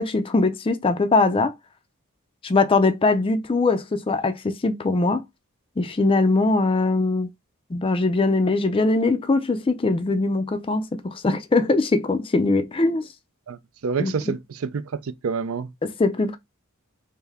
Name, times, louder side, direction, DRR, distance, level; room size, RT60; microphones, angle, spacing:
voice 1, 0.0-1.6 2.4-5.2 5.8-7.3 7.7-13.1 14.0-14.1 15.8-16.4, left 3 dB, 25° left, 0.4 m, -21 dB
voice 2, 13.5-15.7, right 5 dB, 70° right, 0.5 m, -28 dB
3.3 x 2.7 x 3.5 m
head